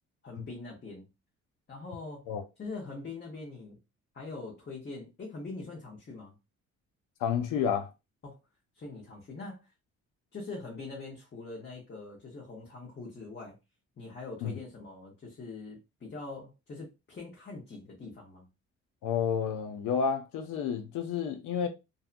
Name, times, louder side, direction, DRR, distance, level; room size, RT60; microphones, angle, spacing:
voice 1, 0.2-1.1 1.7-2.2 2.6-3.8 4.1-6.3 8.2-8.4 8.8-9.7 10.3-13.6 14.0-18.5, left 3 dB, 35° left, 1.0 m, -43 dB
voice 2, 7.2-7.9 14.4-14.5 19.0-21.7, left 7 dB, 90° left, 0.5 m, -30 dB
2.6 x 2.3 x 2.5 m
cardioid pair, 90°, 30 cm